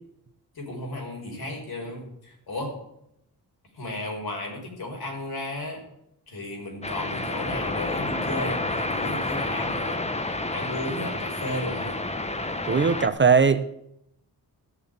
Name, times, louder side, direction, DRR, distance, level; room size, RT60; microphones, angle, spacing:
voice 1, 0.6-2.7 3.7-5.8 6.3-10.0 10.5-12.0, left 1 dB, 70° left, 5.3 m, -34 dB
sound 1, 6.8-13.1, left 2 dB, 15° left, 1.1 m, -30 dB
voice 2, 12.7-13.6, right 5 dB, 30° right, 0.7 m, -19 dB
15.0 x 6.8 x 9.4 m
wide cardioid pair, 130°, 39 cm